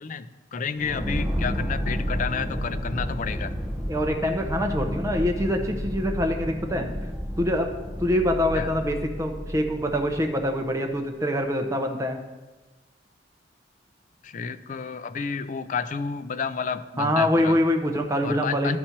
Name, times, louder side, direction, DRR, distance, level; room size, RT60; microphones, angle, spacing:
voice 1, 0.0-3.5 8.5-8.7 14.2-17.6 18.2-18.8, left 5 dB, 45° left, 11 dB, 0.4 m, -30 dB
sound 1, 0.8-10.4, equal, ahead, 1.1 m, -31 dB
voice 2, 3.9-6.9 7.4-7.7 8.0-12.2 17.0-18.8, left 1 dB, 15° right, 4 dB, 0.8 m, -25 dB
12.5 x 4.3 x 4.4 m, 1.2 s
head